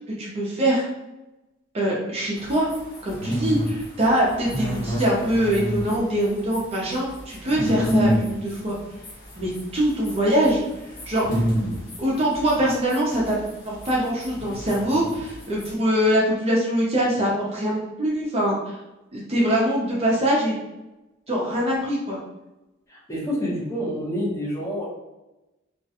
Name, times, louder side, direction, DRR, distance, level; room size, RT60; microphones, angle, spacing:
voice 1, 0.2-0.9 1.7-2.7 3.0-8.8 9.4-10.6 11.1-11.3 12.0-13.4 13.7-18.6 19.1-20.6 21.3-22.2, equal, 30° right, -4 dB, 0.5 m, -23 dB
sound 1, 2.4-15.7, equal, 70° left, 1.1 m, -29 dB
voice 2, 23.1-24.9, equal, 15° left, -6 dB, 0.7 m, -27 dB
2.3 x 2.1 x 2.7 m, 0.99 s
head